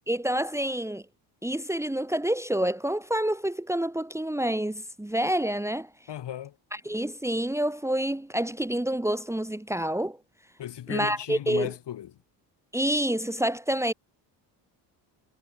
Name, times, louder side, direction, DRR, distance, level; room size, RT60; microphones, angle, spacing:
voice 1, 0.1-1.0 1.4-5.9 6.7-10.2 10.9-11.7 12.7-13.9, right 1 dB, 5° right, 2.2 m, -28 dB
voice 2, 6.1-6.5 10.6-12.1, left 11 dB, 55° left, 7.3 m, -35 dB
supercardioid pair, 80°, 48 cm